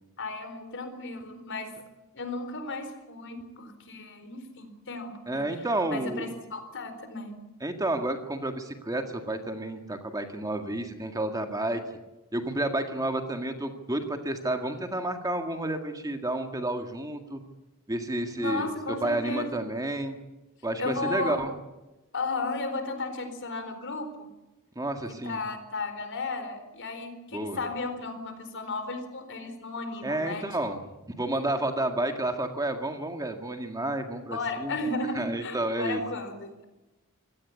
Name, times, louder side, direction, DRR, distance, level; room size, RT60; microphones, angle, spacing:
voice 1, 0.2-1.8 2.1-5.4 5.9-7.4 18.4-19.6 20.8-21.4 22.1-24.3 25.2-30.6 34.3-36.6, left 3 dB, 55° left, 8 dB, 4.3 m, -34 dB
voice 2, 5.3-6.3 7.6-11.8 12.3-17.4 17.9-18.7 19.0-20.2 20.6-21.5 24.8-25.4 27.3-27.6 30.0-30.8 31.2-34.7 35.1-36.0, right 1 dB, 15° right, 5 dB, 1.9 m, -30 dB
26.0 x 17.0 x 8.5 m, 1.0 s
head